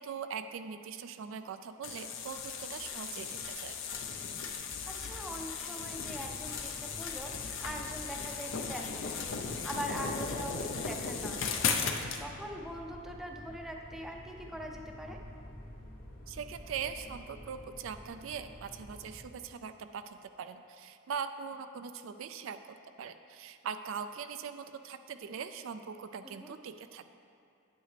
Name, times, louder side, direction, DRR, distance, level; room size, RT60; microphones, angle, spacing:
voice 1, 0.0-3.8 16.3-27.1, right 6 dB, 65° right, 9 dB, 0.3 m, -41 dB
sound 1, 1.8-12.2, left 5 dB, 60° left, 0.6 m, -36 dB
voice 2, 4.5-15.2 26.2-26.5, equal, ahead, 1 dB, 0.5 m, -43 dB
sound 2, 5.7-19.3, equal, 40° left, 0.9 m, -50 dB
9.0 x 8.7 x 3.3 m, 2.5 s
head